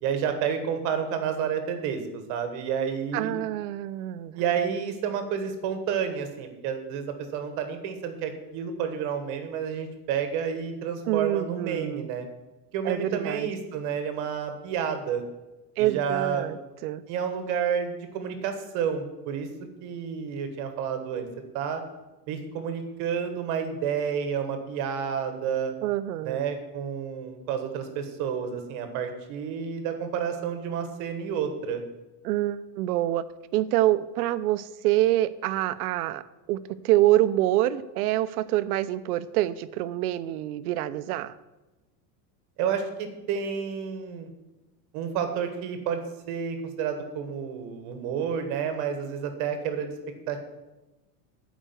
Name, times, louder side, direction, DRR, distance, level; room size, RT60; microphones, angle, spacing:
voice 1, 0.0-3.3 4.3-12.3 12.7-15.2 15.8-16.5 17.1-19.5 19.8-21.3 21.5-21.8 22.3-25.7 26.2-31.8 42.6-44.3 44.9-46.0 46.3-49.9 50.3-50.4, right 7 dB, 35° right, 7 dB, 1.3 m, -30 dB
voice 2, 3.1-4.4 11.1-12.1 12.8-13.5 15.8-17.0 25.8-26.4 32.2-33.2 33.5-36.2 36.5-41.4, right 14 dB, 65° right, 14 dB, 0.7 m, -26 dB
11.0 x 5.1 x 8.0 m, 1.1 s
supercardioid pair, 175°, 49 cm